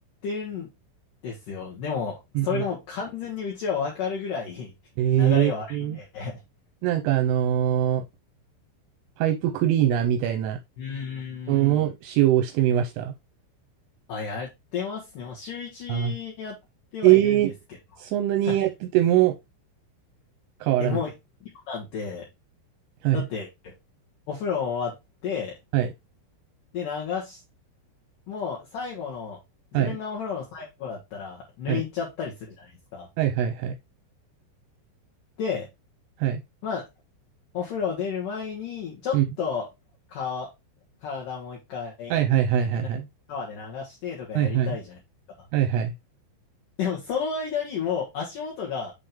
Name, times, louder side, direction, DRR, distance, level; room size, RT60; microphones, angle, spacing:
voice 1, 0.2-0.7 1.2-4.7 5.1-6.4 10.8-11.8 14.1-16.6 16.9-17.4 18.4-18.5 20.8-21.1 21.4-22.2 23.1-23.7 24.3-24.9 25.2-25.5 26.7-27.4 28.3-29.4 29.7-33.1 35.4-35.7 36.6-36.9 37.5-39.7 40.1-40.5 41.0-42.1 42.8-42.9 43.3-45.0 46.8-48.9, left 6 dB, 65° left, 2.2 m, -32 dB
voice 2, 5.0-6.0 6.8-8.0 9.2-10.6 11.5-13.1 15.9-16.1 17.0-17.5 18.0-19.3 20.6-21.0 23.0-23.2 25.7-25.9 29.7-30.0 31.7-31.8 33.2-33.7 36.2-36.4 39.1-39.3 42.1-43.1 44.4-44.8 45.5-45.9, right 12 dB, 80° right, 3.1 m, -22 dB
8.6 x 3.7 x 3.4 m
omnidirectional pair, 5.9 m